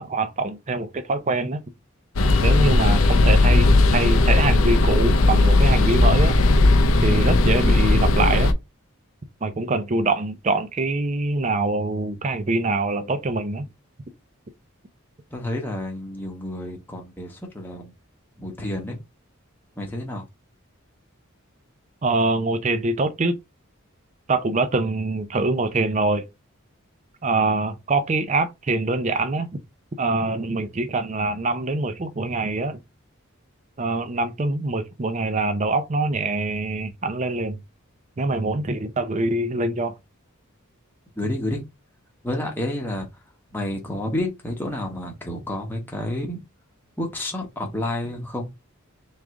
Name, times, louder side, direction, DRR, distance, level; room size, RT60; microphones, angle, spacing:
voice 1, 0.0-1.6 2.4-6.4 7.0-8.5 9.4-13.7 22.0-23.4 24.3-26.3 27.2-29.6 30.0-32.8 33.8-37.6 38.2-40.0, right 2 dB, 35° right, 0.5 m, -24 dB
sound 1, 2.2-8.5, left 2 dB, 65° left, 0.6 m, -17 dB
voice 2, 15.3-17.9 18.4-19.0 19.8-20.3 41.2-41.6 42.2-43.1 43.5-46.4 47.0-48.5, left 1 dB, 10° left, 1.0 m, -30 dB
3.6 x 3.2 x 3.6 m
head